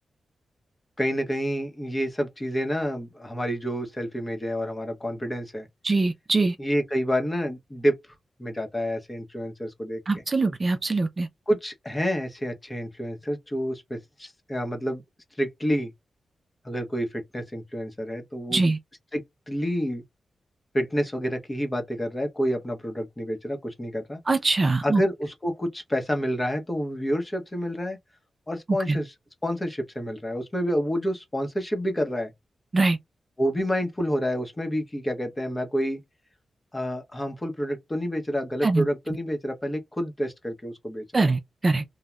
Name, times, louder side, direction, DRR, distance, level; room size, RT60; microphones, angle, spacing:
voice 1, 1.0-5.7 6.6-8.0 8.4-10.0 11.5-15.0 15.4-15.9 16.6-18.6 19.1-20.0 20.7-24.2 24.8-28.0 28.5-29.1 29.4-32.3 33.4-36.0 36.7-41.2, equal, 20° left, 0.8 m, -28 dB
voice 2, 5.8-6.6 10.1-11.3 18.5-18.8 24.3-25.0 28.9-29.0 32.7-33.0 38.6-38.8 41.1-41.8, right 3 dB, 35° right, 0.4 m, -23 dB
3.1 x 2.1 x 2.3 m
wide cardioid pair, 105°, 0 cm